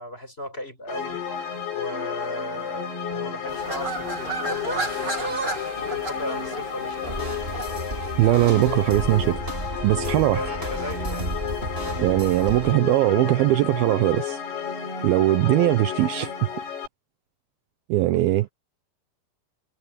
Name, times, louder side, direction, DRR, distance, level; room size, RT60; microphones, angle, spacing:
voice 1, 0.0-1.4 1.7-7.2 10.4-11.3 18.1-18.2, left 1 dB, 15° left, 6.2 m, -36 dB
sound 1, 0.9-16.9, left 7 dB, 85° left, 6.8 m, -32 dB
sound 2, 3.5-9.3, right 2 dB, 50° right, 0.6 m, -33 dB
sound 3, 7.0-12.7, right 1 dB, 15° right, 3.2 m, -33 dB
voice 2, 8.2-9.4 9.8-10.4 12.0-14.4 15.0-16.5 17.9-18.5, right 16 dB, 75° right, 2.5 m, -20 dB
omnidirectional pair, 4.6 m